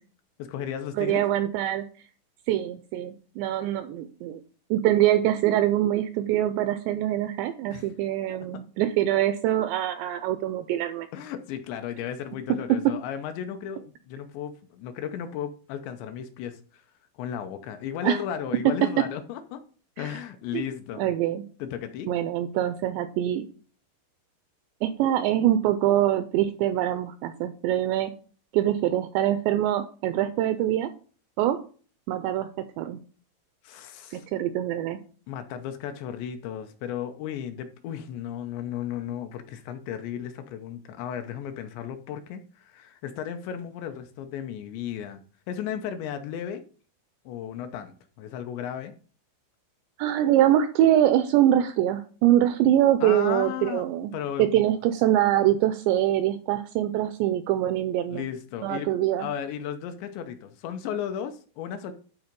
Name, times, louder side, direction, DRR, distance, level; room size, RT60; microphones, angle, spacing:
voice 1, 0.4-1.2 7.7-7.9 8.3-8.4 11.1-16.8 17.2-19.6 20.0-21.1 21.6-22.1 33.6-34.3 35.3-46.6 47.3-48.9 53.0-53.8 54.1-54.5 58.1-58.9 59.2-61.9, left 9 dB, 80° left, 7 dB, 2.8 m, -35 dB
voice 2, 1.0-1.8 2.5-4.4 4.7-11.1 12.7-12.9 18.0-18.2 18.7-19.1 20.0-20.1 20.5-20.7 21.0-21.4 22.1-23.5 24.8-28.1 28.5-30.9 31.4-31.6 32.1-32.5 32.8-33.0 34.1-35.0 50.0-54.1 54.4-58.3 58.6-59.3, right 12 dB, 85° right, 11 dB, 2.5 m, -24 dB
12.0 x 4.3 x 5.2 m, 0.40 s
omnidirectional pair, 5.5 m